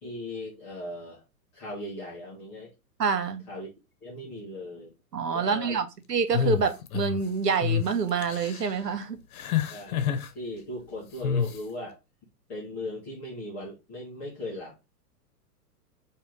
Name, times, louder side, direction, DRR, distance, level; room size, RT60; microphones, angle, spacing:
voice 1, 0.0-1.2 1.5-2.7 3.5-3.7 4.0-4.9 5.3-5.8 9.7-12.0 12.5-14.7, left 1 dB, 5° left, 0.3 m, -38 dB
voice 2, 3.0-3.5 5.1-9.2, right 5 dB, 90° right, 1.0 m, -27 dB
sound 1, 6.3-7.2 7.6-7.9 8.2-8.7 9.4-10.3 11.2-11.6, left 8 dB, 65° left, 0.9 m, -28 dB
4.7 x 2.9 x 3.5 m
hypercardioid pair, 125°, 47 cm